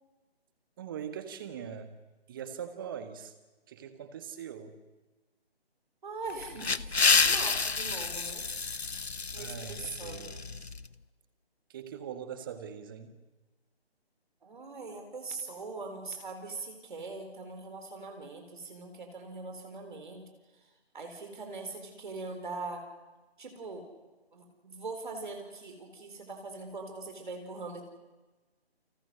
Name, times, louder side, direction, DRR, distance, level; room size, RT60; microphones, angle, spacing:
voice 1, 0.8-1.9 2.3-3.3 3.7-4.8 9.4-10.7 11.7-13.1, right 8 dB, 20° right, 10 dB, 1.6 m, -42 dB
voice 2, 6.0-8.5 9.3-10.3 14.4-20.3 20.5-22.8 23.4-23.9 24.3-27.8, right 3 dB, 50° right, 4 dB, 4.4 m, -42 dB
sound 1, 6.3-10.8, left 4 dB, 80° left, 0.9 m, -29 dB
29.5 x 26.5 x 6.3 m, 1.2 s
figure-of-eight pair, 150°, 32 cm